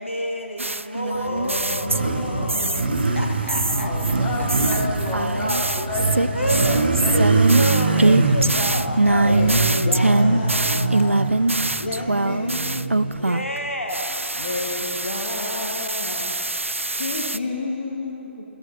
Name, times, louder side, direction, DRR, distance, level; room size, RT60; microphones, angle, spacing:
voice 1, 0.0-4.2 4.7-5.1 6.3-10.1 13.1-14.2, equal, 90° left, 2 dB, 1.1 m, -30 dB
sound 1, 0.6-2.2 2.5-3.1 3.5-13.6 13.9-17.4, right 2 dB, 90° right, 0.4 m, -23 dB
Motorcycle, 1.0-13.6, right 3 dB, 50° right, 1.1 m, -24 dB
voice 2, 1.2-3.2 9.2-11.3 11.8-13.0 14.4-16.4 16.9-18.4, left 2 dB, 55° left, -2 dB, 1.5 m, -31 dB
voice 3, 3.7-7.7, left 2 dB, 25° left, -5 dB, 2.9 m, -30 dB
21.0 x 15.0 x 2.8 m, 2.9 s
figure-of-eight pair, 140°, 7 cm